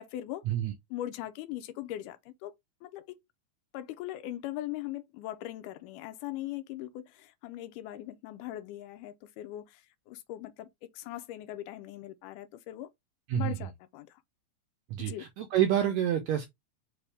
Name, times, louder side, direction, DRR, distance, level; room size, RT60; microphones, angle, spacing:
voice 1, 0.0-0.4 0.9-2.5 2.8-3.2 3.7-10.7 10.9-12.9 13.3-14.2 15.0-15.3, left 14 dB, 80° left, 2.0 m, -40 dB
voice 2, 14.9-16.5, right 11 dB, 80° right, 1.6 m, -28 dB
5.7 x 2.6 x 3.3 m
omnidirectional pair, 3.8 m